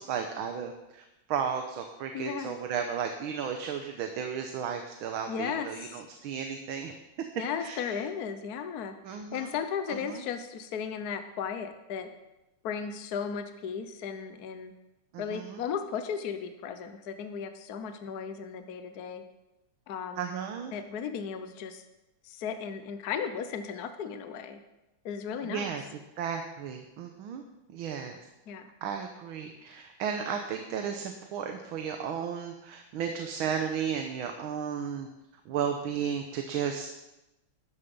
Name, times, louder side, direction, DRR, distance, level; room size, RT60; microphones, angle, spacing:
voice 1, 0.0-6.9 7.6-8.0 9.0-9.5 9.9-10.2 15.1-15.6 20.2-20.7 25.4-25.9 26.2-27.4 27.7-28.2 28.8-35.1 35.5-36.9, right 7 dB, 85° right, 5 dB, 1.7 m, -34 dB
voice 2, 2.1-2.5 5.3-6.0 7.4-12.1 12.6-14.7 15.2-19.2 19.9-20.3 20.7-21.8 22.2-24.6 25.0-25.7 28.5-28.7, left 7 dB, 60° left, 8 dB, 1.2 m, -35 dB
13.0 x 10.0 x 5.4 m, 0.97 s
omnidirectional pair, 2.2 m